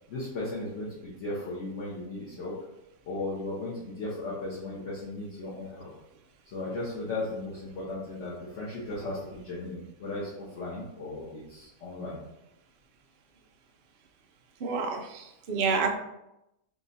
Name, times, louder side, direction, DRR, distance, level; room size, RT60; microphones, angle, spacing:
voice 1, 0.1-2.5 3.1-5.9 6.4-12.2, left 2 dB, 55° left, -6 dB, 1.2 m, -36 dB
voice 2, 14.6-16.0, right 5 dB, 85° right, 3 dB, 0.5 m, -29 dB
3.6 x 2.6 x 3.9 m, 0.86 s
omnidirectional pair, 1.7 m